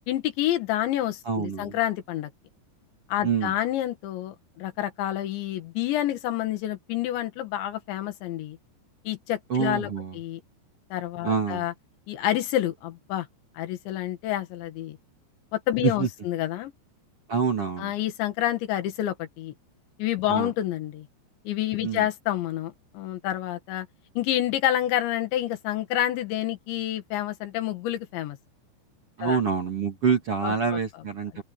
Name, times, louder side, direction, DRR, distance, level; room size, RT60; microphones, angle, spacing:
voice 1, 0.1-2.3 3.1-8.6 9.1-10.4 10.9-11.7 12.1-13.3 13.6-15.0 15.5-16.7 17.8-19.5 20.0-21.1 21.5-23.9 24.2-28.4 29.2-29.4 30.4-30.8 31.3-31.4, left 13 dB, 85° left, 4.1 m, -28 dB
voice 2, 1.3-1.8 3.2-3.5 9.5-10.2 11.2-11.6 15.8-16.1 17.3-17.9 20.3-20.5 21.8-22.0 29.2-31.4, right 6 dB, 40° right, 2.6 m, -26 dB
open air
omnidirectional pair, 5.0 m